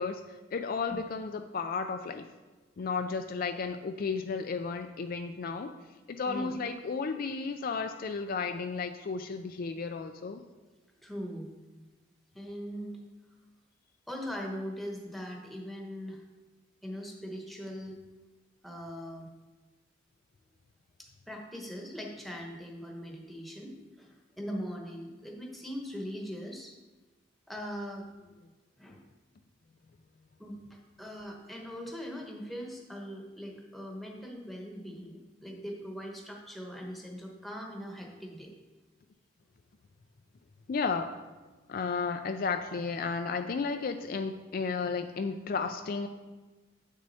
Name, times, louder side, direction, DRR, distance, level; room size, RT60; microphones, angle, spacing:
voice 1, 0.0-2.3 2.8-5.7 6.1-10.4 40.7-41.1 41.7-46.1, left 4 dB, 50° left, 6 dB, 0.4 m, -33 dB
voice 2, 11.0-11.5 12.3-13.0 14.1-16.2 16.8-18.0 18.6-19.3 21.0-26.7 27.5-28.1 28.8-29.0 30.4-38.5, equal, ahead, 0 dB, 1.1 m, -41 dB
8.4 x 6.3 x 4.1 m, 1.2 s
head